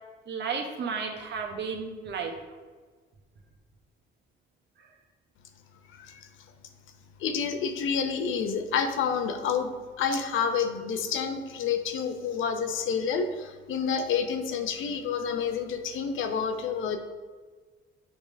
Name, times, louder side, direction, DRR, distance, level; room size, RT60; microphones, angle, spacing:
voice 1, 0.3-2.4 4.8-4.9, right 5 dB, 60° right, 3 dB, 1.1 m, -33 dB
voice 2, 5.9-6.3 7.2-17.0, left 6 dB, 80° left, 7 dB, 0.8 m, -29 dB
7.7 x 3.7 x 5.1 m, 1.5 s
cardioid pair, 90°, 20 cm